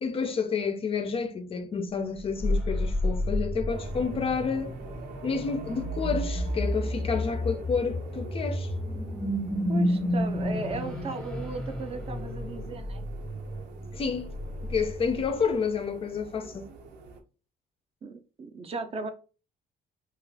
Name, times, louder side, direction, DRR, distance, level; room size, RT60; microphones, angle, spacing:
voice 1, 0.0-4.7 5.2-8.7 13.9-14.3 14.7-16.7, left 5 dB, 35° left, 0.4 m, -29 dB
sound 1, 2.2-15.6, left 1 dB, 5° left, 0.8 m, -31 dB
sound 2, 3.7-17.2, right 3 dB, 80° right, 0.7 m, -45 dB
voice 2, 9.7-13.0 18.0-19.1, right 3 dB, 35° right, 0.5 m, -36 dB
2.4 x 2.3 x 3.3 m
cardioid pair, 110°, 17 cm